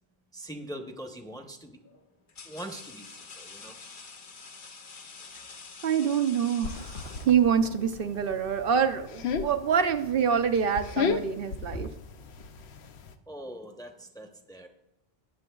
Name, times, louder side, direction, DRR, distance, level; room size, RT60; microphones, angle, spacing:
voice 1, 0.3-1.8 2.4-3.7 11.7-11.8 13.3-14.7, right 1 dB, 5° left, 4 dB, 0.7 m, -42 dB
sound 1, 0.7-1.0 1.8-7.8, left 4 dB, 55° left, 1.0 m, -47 dB
voice 2, 5.8-11.9, right 7 dB, 65° right, 8 dB, 0.7 m, -26 dB
sound 2, 6.6-13.1, left 5 dB, 90° left, 0.9 m, -35 dB
19.5 x 7.0 x 2.3 m, 0.89 s
omnidirectional pair, 1.0 m